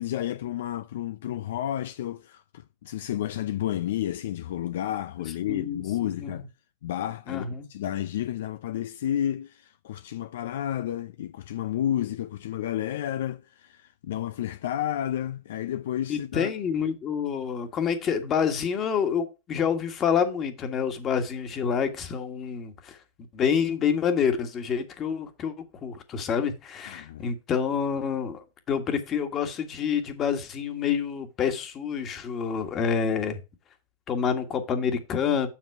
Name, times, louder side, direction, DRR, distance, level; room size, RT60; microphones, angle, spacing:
voice 1, 0.0-6.5 6.8-16.5 26.8-27.3, left 11 dB, 70° left, 0.4 m, -31 dB
voice 2, 5.5-6.4 7.3-7.6 16.1-23.0 23.3-25.5 25.8-33.4 34.1-35.5, left 7 dB, 35° left, 1.6 m, -27 dB
7.4 x 6.0 x 4.7 m
hypercardioid pair, 105°, 0 cm